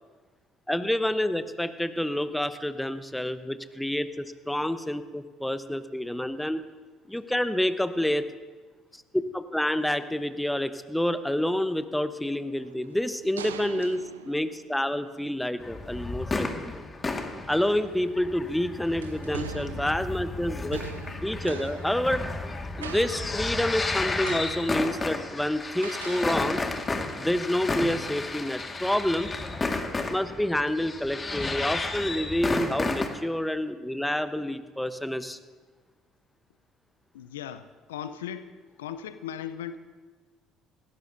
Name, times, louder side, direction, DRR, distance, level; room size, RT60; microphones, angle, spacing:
voice 1, 0.7-6.6 7.1-8.3 9.3-16.8 17.5-20.8 21.2-22.2 22.7-26.6 27.2-29.3 30.1-35.4, left 1 dB, 5° left, 11 dB, 1.0 m, -28 dB
sound 1, 12.6-15.1 16.5-16.7 17.5-18.5 19.0-22.5 22.8-23.9 24.2-25.2 25.8-26.3, right 8 dB, 90° right, 0.5 m, -43 dB
sound 2, 15.6-33.1, left 3 dB, 25° left, 1.8 m, -32 dB
voice 2, 37.1-38.5 38.8-39.8, left 9 dB, 85° left, 12 dB, 0.6 m, -37 dB
19.0 x 16.0 x 2.7 m, 1.4 s
hypercardioid pair, 60°, 0 cm